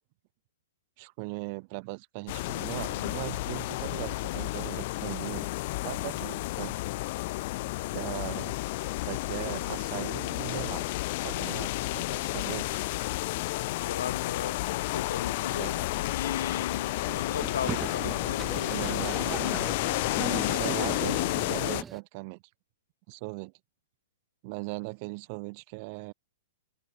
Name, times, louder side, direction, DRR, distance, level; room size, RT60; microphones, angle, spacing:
voice 1, 1.0-5.5 5.8-6.8 7.9-8.6 9.0-10.8 11.2-12.8 15.4-15.9 17.6-18.2 18.7-19.5 20.4-22.4 23.1-23.5 24.4-26.1, right 30 dB, 30° right, 4.4 m, -39 dB
sound 1, 2.3-21.8, left 20 dB, 35° left, 0.6 m, -31 dB
voice 2, 13.7-19.7, left 8 dB, 80° left, 1.4 m, -37 dB
Boat Water vehicle, 17.0-22.0, right 7 dB, 10° right, 1.7 m, -39 dB
hypercardioid pair, 170°, 0 cm